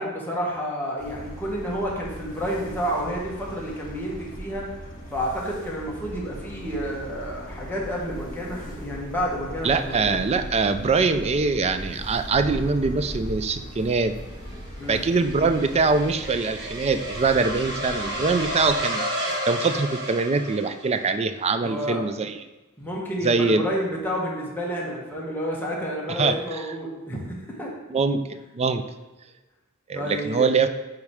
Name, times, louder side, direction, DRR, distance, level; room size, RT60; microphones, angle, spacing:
voice 1, 0.0-4.7 5.1-10.2 14.8-15.0 21.6-22.0 22.8-27.7 29.9-30.5, equal, 10° left, -4 dB, 1.5 m, -30 dB
sound 1, 1.0-18.8, equal, 40° left, 1.6 m, -39 dB
voice 2, 9.6-14.2 14.9-19.0 19.5-22.3 23.2-23.6 26.1-26.6 27.9-28.8 29.9-30.7, right 4 dB, 30° right, 9 dB, 0.4 m, -23 dB
sound 2, 14.0-21.1, equal, 55° right, 1.4 m, -32 dB
8.3 x 3.2 x 4.8 m, 1.1 s
head